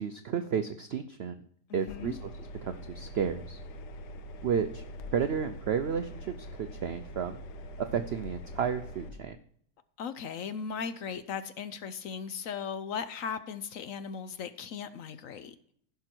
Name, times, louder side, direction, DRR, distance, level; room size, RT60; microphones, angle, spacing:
voice 1, 0.0-1.4 1.7-2.2 2.6-3.6 4.4-4.8 5.1-7.4 7.9-9.4, right 7 dB, 80° right, 9 dB, 0.5 m, -32 dB
voice 2, 1.7-2.2 10.0-15.5, left 6 dB, 65° left, 12 dB, 0.9 m, -37 dB
Engine, 1.9-9.1, left 1 dB, 80° left, 1.4 m, -43 dB
15.0 x 6.0 x 4.4 m, 0.65 s
omnidirectional pair, 1.8 m